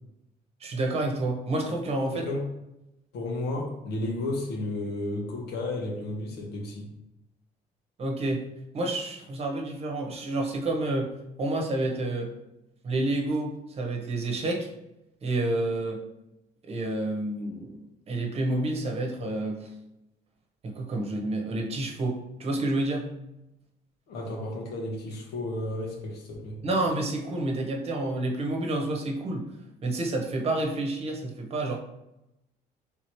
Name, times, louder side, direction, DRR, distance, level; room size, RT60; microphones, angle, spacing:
voice 1, 0.6-2.2 8.0-8.5 8.7-12.3 12.8-14.7 15.2-16.0 16.7-17.8 18.1-19.7 20.6-23.1 26.6-29.5 29.8-31.8, right 2 dB, 35° right, 1 dB, 1.0 m, -29 dB
voice 2, 2.1-2.4 3.1-6.9 24.1-26.6, left 2 dB, 75° left, 0 dB, 1.1 m, -33 dB
3.5 x 3.1 x 4.4 m, 0.90 s
cardioid pair, 110°, 17 cm